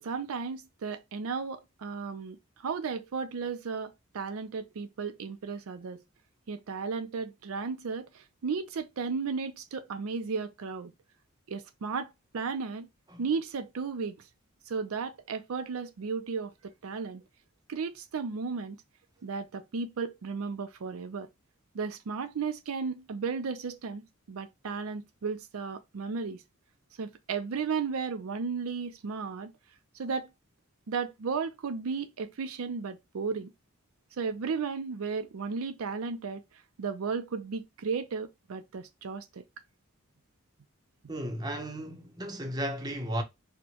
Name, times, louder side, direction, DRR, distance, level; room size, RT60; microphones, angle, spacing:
voice 1, 0.0-6.0 6.5-10.9 11.5-12.9 13.2-14.2 14.7-17.2 17.7-18.8 19.2-21.3 21.7-24.0 24.3-26.4 27.0-29.5 30.0-30.3 30.9-33.5 34.2-36.4 36.8-39.4, right 5 dB, 85° right, 0.5 m, -34 dB
voice 2, 41.1-43.2, right 1 dB, 20° right, 0.7 m, -34 dB
4.3 x 2.1 x 2.8 m
head